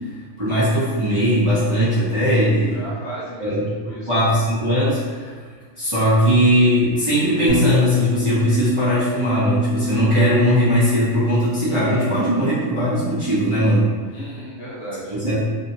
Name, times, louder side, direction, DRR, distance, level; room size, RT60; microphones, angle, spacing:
voice 1, 0.4-2.8 3.4-5.4 5.8-13.9 15.1-15.4, equal, 30° right, -12 dB, 0.6 m, -19 dB
voice 2, 2.7-4.3 14.1-15.2, right 1 dB, 60° left, -7 dB, 0.8 m, -35 dB
Bass guitar, 7.5-13.7, left 2 dB, 75° right, 1.1 m, -25 dB
2.8 x 2.6 x 2.6 m, 1.5 s
omnidirectional pair, 1.4 m